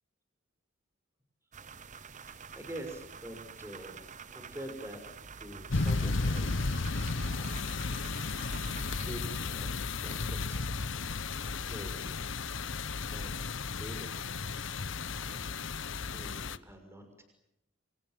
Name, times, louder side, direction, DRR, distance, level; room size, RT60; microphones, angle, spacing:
sound 1, 1.5-9.1, right 6 dB, 40° right, 1.1 m, -48 dB
voice 1, 1.9-4.0 4.3-5.0 5.4-7.6 9.0-12.2 13.0-13.3 13.8-15.6 16.1-17.2, right 1 dB, 15° right, 5 dB, 6.1 m, -47 dB
Piano, 5.2-16.5, left 1 dB, 55° right, 4.7 m, -56 dB
sound 2, 5.7-16.6, left 3 dB, 70° left, 1.0 m, -34 dB
28.5 x 27.0 x 7.7 m, 0.79 s
head